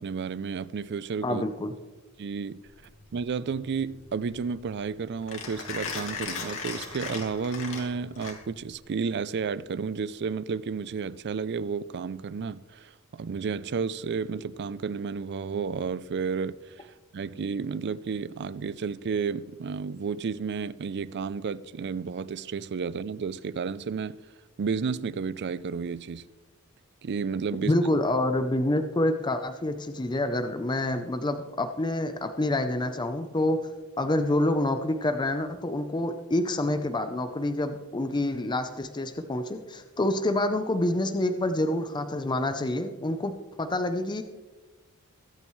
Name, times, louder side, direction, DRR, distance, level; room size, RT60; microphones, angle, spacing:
voice 1, 0.0-1.4 2.2-2.6 3.1-24.2 24.6-26.2 27.0-27.7, right 5 dB, 50° right, 0.4 m, -32 dB
voice 2, 1.2-1.7 27.6-33.6 34.0-44.2, left 1 dB, 20° left, 0.6 m, -27 dB
Mechanisms, 2.7-8.8, left 5 dB, 65° left, 2.4 m, -38 dB
22.5 x 8.7 x 3.2 m
head